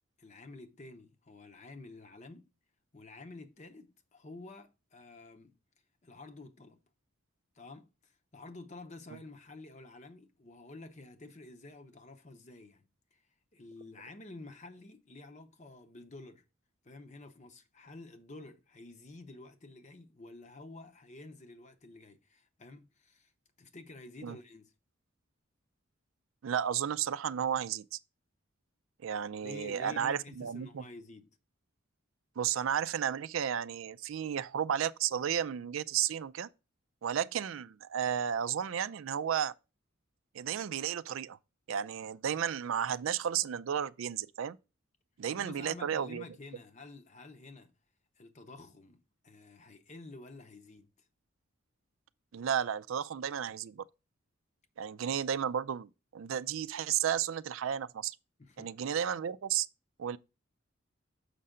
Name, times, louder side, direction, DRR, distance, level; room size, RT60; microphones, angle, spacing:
voice 1, 0.2-2.5 2.9-5.5 6.0-6.8 7.5-13.2 13.5-16.4 16.8-23.3 23.6-24.7 29.4-31.3 45.3-47.7 48.2-51.1 55.0-55.2 58.4-58.7, left 2 dB, 35° left, 0.7 m, -50 dB
voice 2, 26.4-28.0 29.0-30.8 32.4-36.5 37.0-39.5 40.3-41.4 41.7-44.6 45.2-46.2 52.3-53.8 54.8-58.2 58.6-59.7 60.0-60.2, right 9 dB, 75° right, 0.4 m, -33 dB
6.6 x 5.5 x 3.7 m
head